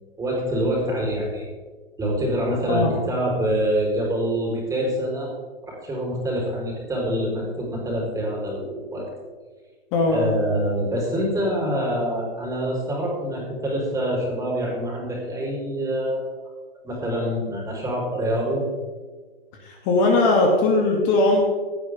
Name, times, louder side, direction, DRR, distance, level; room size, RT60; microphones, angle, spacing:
voice 1, 0.2-1.5 2.0-5.3 5.6-9.0 10.1-16.2 16.8-18.6, right 1 dB, 10° right, -3 dB, 4.7 m, -25 dB
voice 2, 9.9-10.3 19.6-21.4, left 2 dB, 35° left, 0 dB, 2.9 m, -19 dB
17.5 x 12.0 x 3.8 m, 1.4 s
hypercardioid pair, 125°, 31 cm